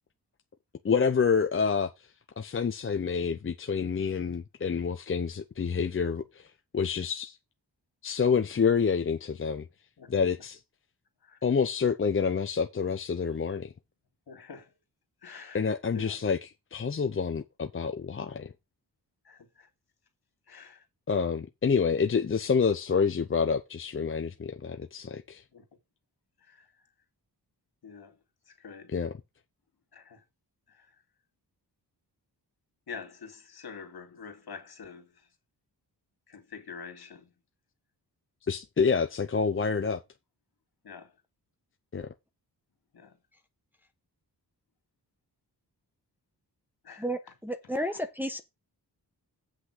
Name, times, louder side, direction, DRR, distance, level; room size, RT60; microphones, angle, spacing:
voice 1, 0.8-7.4 8.0-9.7 10.1-10.6 11.4-13.7 15.5-18.5 21.1-25.4 28.9-29.2 38.5-40.0 41.9-42.1, left 6 dB, 30° left, 0.6 m, -28 dB
voice 2, 14.3-14.7 15.2-15.6 15.9-16.1 19.3-19.7 20.5-20.8 25.5-25.6 27.8-28.1 28.6-28.9 29.9-30.2 32.9-35.1 36.3-37.3 40.8-41.1 42.9-43.1 46.8-47.0, left 5 dB, 65° left, 2.6 m, -45 dB
voice 3, 47.0-48.4, equal, 5° right, 1.0 m, -32 dB
8.0 x 6.1 x 4.9 m
wide cardioid pair, 130°, 40 cm